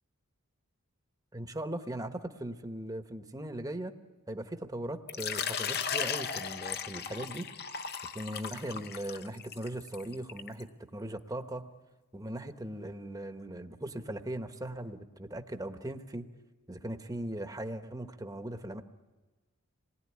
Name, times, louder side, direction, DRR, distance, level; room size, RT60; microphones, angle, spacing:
voice 1, 1.3-4.0 4.3-7.5 8.1-11.7 12.1-16.3 16.7-18.8, right 1 dB, 15° right, 7 dB, 1.1 m, -39 dB
Water / Liquid, 5.1-10.6, left 7 dB, 45° left, 0.9 m, -36 dB
27.5 x 20.5 x 9.7 m, 1.3 s
head